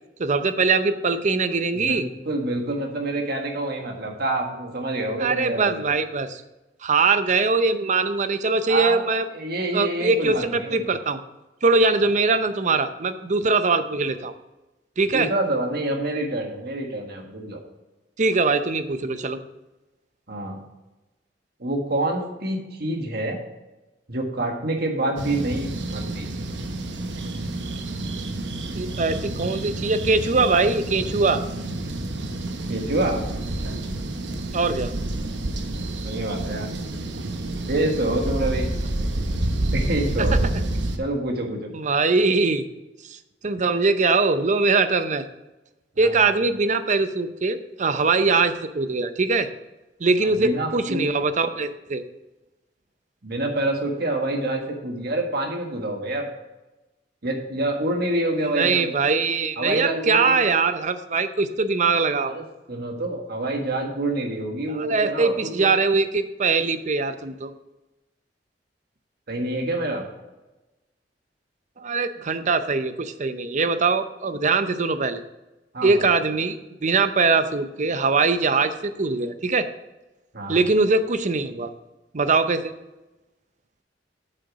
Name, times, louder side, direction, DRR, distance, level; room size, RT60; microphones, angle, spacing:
voice 1, 0.2-2.0 5.2-6.4 6.8-9.2 9.7-11.2 11.6-14.3 15.0-15.3 18.2-19.4 28.7-31.4 34.5-34.9 41.7-42.7 43.1-43.2 43.4-45.2 46.0-49.5 50.0-52.0 58.4-62.3 64.7-67.5 71.8-75.2 75.8-76.6 76.8-79.7 80.5-81.7 82.1-82.7, right 4 dB, 45° right, 11 dB, 0.6 m, -22 dB
voice 2, 1.7-5.8 8.7-9.0 9.3-10.9 15.1-17.6 20.3-20.6 21.6-23.4 24.1-26.3 32.7-33.2 36.0-36.7 37.7-38.8 39.7-40.5 41.0-41.7 46.0-46.1 50.2-51.3 53.2-56.3 57.2-58.9 59.6-60.4 62.2-65.7 69.3-70.0 75.7-76.1 80.3-80.6, right 1 dB, 60° right, 2 dB, 1.7 m, -27 dB
sound 1, 25.2-41.0, right 1 dB, 80° right, 1.0 m, -29 dB
8.1 x 6.6 x 4.8 m, 1.1 s
head